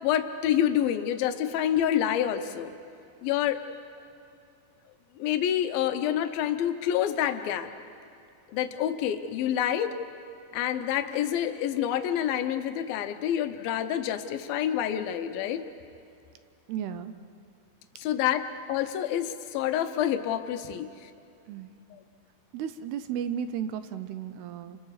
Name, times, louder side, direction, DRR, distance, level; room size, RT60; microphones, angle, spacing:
voice 1, 0.0-2.7 3.2-3.6 5.2-7.7 8.5-9.9 10.5-15.6 18.0-21.1 21.9-22.0, left 10 dB, 75° left, 8 dB, 2.2 m, -27 dB
voice 2, 16.7-17.1 21.5-21.7 22.5-24.8, right 8 dB, 80° right, 11 dB, 2.4 m, -34 dB
29.5 x 25.5 x 4.9 m, 2.6 s
omnidirectional pair, 5.3 m